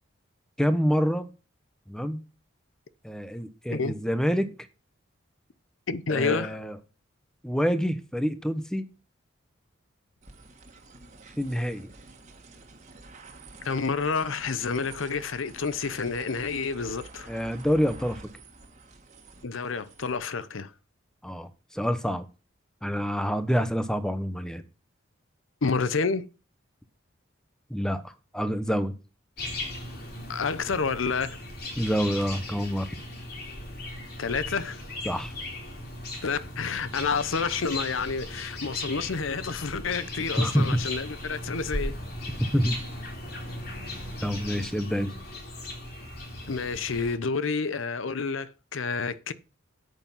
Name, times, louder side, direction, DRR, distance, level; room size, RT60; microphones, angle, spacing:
voice 1, 0.6-1.3 1.9-2.2 3.0-4.5 6.1-6.7 7.4-8.8 11.4-11.9 17.3-18.2 21.2-22.3 22.8-24.6 27.7-28.9 31.8-32.9 35.1-35.3 40.4-40.8 42.5-42.8 44.2-45.1, equal, 5° left, 0.9 m, -27 dB
voice 2, 5.9-6.6 13.6-17.3 19.4-20.7 25.6-26.2 30.3-31.4 34.2-34.8 36.2-42.0 46.5-49.3, left 4 dB, 75° left, 0.7 m, -29 dB
sound 1, 10.2-20.2, right 3 dB, 35° right, 1.8 m, -48 dB
sound 2, 29.4-47.2, left 1 dB, 50° left, 3.4 m, -37 dB
9.0 x 8.1 x 5.6 m
head